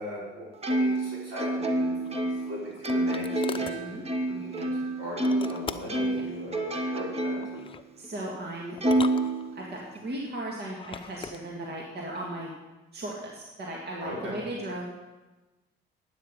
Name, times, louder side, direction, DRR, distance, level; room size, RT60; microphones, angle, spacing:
voice 1, 0.0-1.9 2.3-4.1 4.4-7.6 14.0-14.4, equal, 85° right, -5 dB, 5.3 m, -39 dB
Plucked string instrument, 0.6-5.6 5.9-7.6 8.0-8.1 8.8-10.0, right 1 dB, 30° right, 1.3 m, -28 dB
sound 1, 2.0-3.8 5.2-6.1 7.4-7.9 8.8-9.8 10.7-11.4, left 6 dB, 25° left, 0.7 m, -40 dB
voice 2, 3.6-4.6 8.0-8.8 9.5-12.5 12.9-14.8, right 1 dB, 55° right, -2 dB, 2.2 m, -37 dB
12.5 x 9.1 x 5.4 m, 1.1 s
cardioid pair, 100°, 20 cm